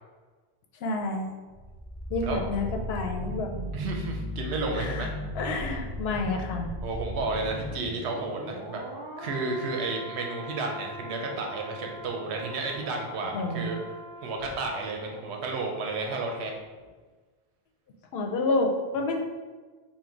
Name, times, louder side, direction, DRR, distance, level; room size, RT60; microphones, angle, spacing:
voice 1, 0.8-1.3 2.1-3.5 4.7-5.1 5.4-6.7 13.3-13.7 18.1-19.2, left 2 dB, 70° left, 3 dB, 0.8 m, -29 dB
sound 1, 1.5-16.4 16.7-16.9, equal, 35° right, 0.5 m, -38 dB
voice 2, 3.7-5.1 6.8-8.8 9.2-13.8 14.2-16.5, right 3 dB, 90° right, 1 dB, 0.9 m, -32 dB
3.8 x 2.2 x 4.5 m, 1.4 s
omnidirectional pair, 1.1 m